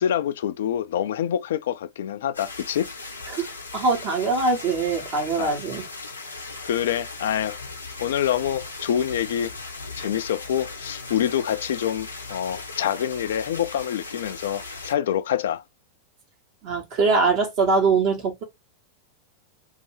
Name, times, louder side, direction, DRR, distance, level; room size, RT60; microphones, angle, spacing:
voice 1, 0.0-2.9 5.4-5.6 6.2-6.3 6.6-7.6 8.0-9.5 10.0-15.6, left 10 dB, 60° left, 0.3 m, -26 dB
sound 1, 2.3-14.9, left 3 dB, 80° left, 0.8 m, -38 dB
voice 2, 3.7-5.9 16.6-18.4, right 4 dB, 45° right, 1.1 m, -22 dB
2.7 x 2.6 x 3.1 m
figure-of-eight pair, 90°, 0 cm